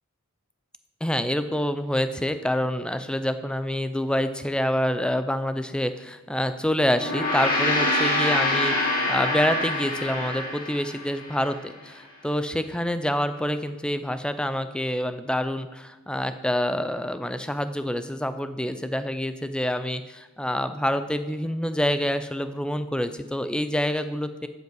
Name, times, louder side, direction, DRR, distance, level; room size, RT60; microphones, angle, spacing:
voice 1, 1.0-24.5, left 1 dB, 5° left, 10 dB, 0.5 m, -27 dB
Gong, 6.9-11.5, left 1 dB, 40° left, 2.4 m, -25 dB
12.0 x 8.1 x 4.7 m, 1.1 s
head